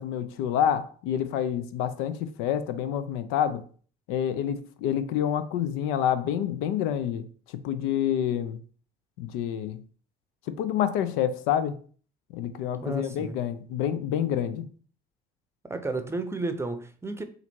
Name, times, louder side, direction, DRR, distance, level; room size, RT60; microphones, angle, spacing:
voice 1, 0.0-3.6 4.1-8.6 9.2-9.8 10.5-11.8 12.3-14.7, left 9 dB, 80° left, 0.5 m, -28 dB
voice 2, 12.8-13.4 15.6-17.2, right 3 dB, 10° right, 0.6 m, -32 dB
4.1 x 2.6 x 4.4 m
supercardioid pair, 80°, 21 cm